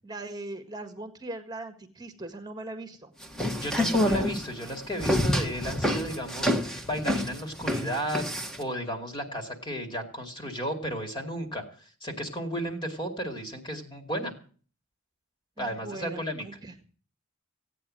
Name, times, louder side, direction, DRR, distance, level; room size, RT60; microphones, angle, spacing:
voice 1, 0.0-3.1 15.6-16.7, right 2 dB, 20° right, 8 dB, 1.8 m, -40 dB
sound 1, 3.2-8.6, left 1 dB, 5° left, 1.6 m, -27 dB
voice 2, 3.6-8.3 8.6-14.3 15.6-16.5, equal, 20° left, 5 dB, 2.4 m, -34 dB
16.5 x 9.2 x 7.7 m, 0.43 s
head